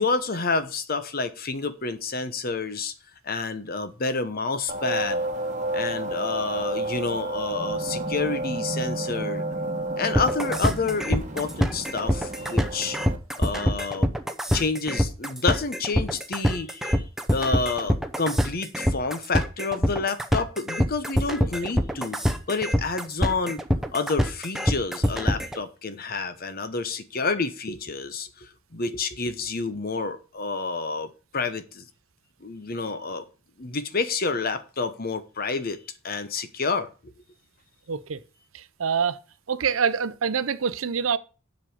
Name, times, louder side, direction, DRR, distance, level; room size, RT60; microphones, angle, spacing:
voice 1, 0.0-2.9 3.2-5.2 5.7-9.4 10.0-13.0 13.3-14.1 14.5-17.0 17.3-23.6 23.9-31.8 32.4-33.3 33.6-35.8 36.0-36.9, left 4 dB, 45° left, 1.0 m, -29 dB
sound 1, 4.7-13.2, right 1 dB, 35° right, 1.2 m, -31 dB
sound 2, 10.1-25.6, equal, ahead, 0.7 m, -24 dB
voice 2, 37.9-38.2 38.5-39.2 39.5-41.2, right 6 dB, 75° right, 0.6 m, -25 dB
7.5 x 5.3 x 7.5 m
head